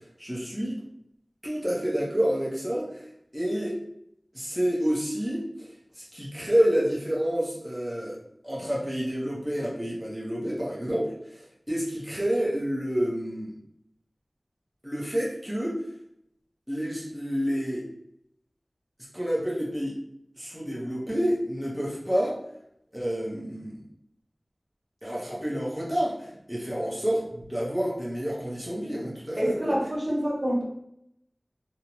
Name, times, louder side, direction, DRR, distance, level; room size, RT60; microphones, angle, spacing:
voice 1, 0.2-0.8 1.4-3.8 4.3-5.7 6.0-8.2 8.4-13.6 14.8-15.8 16.7-17.9 19.1-20.0 20.4-22.4 22.9-23.8 25.0-29.7, equal, 5° right, -6 dB, 0.7 m, -29 dB
voice 2, 29.4-30.6, equal, 40° right, -5 dB, 0.8 m, -26 dB
2.5 x 2.1 x 2.9 m, 0.76 s
wide cardioid pair, 55°, 0 cm